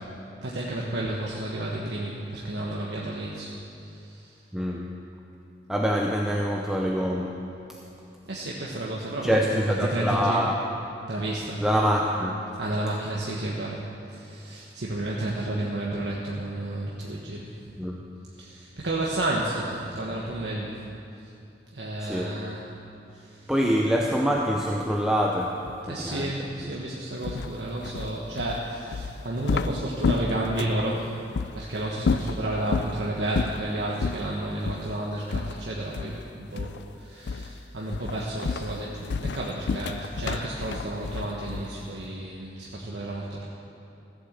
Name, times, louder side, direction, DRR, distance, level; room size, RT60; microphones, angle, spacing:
voice 1, 0.4-3.5 3.8-4.4 8.3-10.5 11.1-11.6 12.6-17.6 18.4-20.9 21.7-22.7 23.1-23.5 25.9-43.5, right 1 dB, 80° right, -4 dB, 1.3 m, -31 dB
voice 2, 4.5-4.9 5.7-7.4 7.7-7.8 9.2-10.7 11.6-12.4 17.8-18.0 22.0-22.4 23.5-26.5, equal, 5° right, -1 dB, 0.6 m, -25 dB
sound 1, 27.2-30.9 31.3-31.5 32.0-33.0 33.3-33.7 34.0-34.2 34.6-34.9 35.3-36.3 36.6-36.9 37.3-37.6 37.9-41.8, left 4 dB, 80° left, 0.4 m, -30 dB
14.5 x 8.0 x 7.5 m, 2.7 s
head